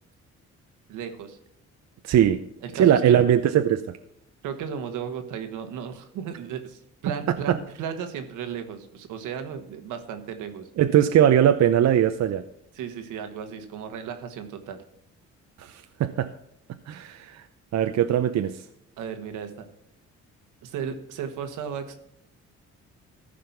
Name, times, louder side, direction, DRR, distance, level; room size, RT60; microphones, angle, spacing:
voice 1, 0.9-1.4 2.6-3.2 4.4-10.7 12.7-14.8 19.0-19.6 20.6-21.9, right 7 dB, 90° right, 7 dB, 1.5 m, -35 dB
voice 2, 2.0-2.4 2.8-3.8 7.5-7.6 10.8-12.4 15.6-16.3 16.9-17.4 17.7-18.6, right 10 dB, 65° right, 8 dB, 0.7 m, -20 dB
14.0 x 5.1 x 5.9 m, 0.77 s
cardioid pair, 90°, 30 cm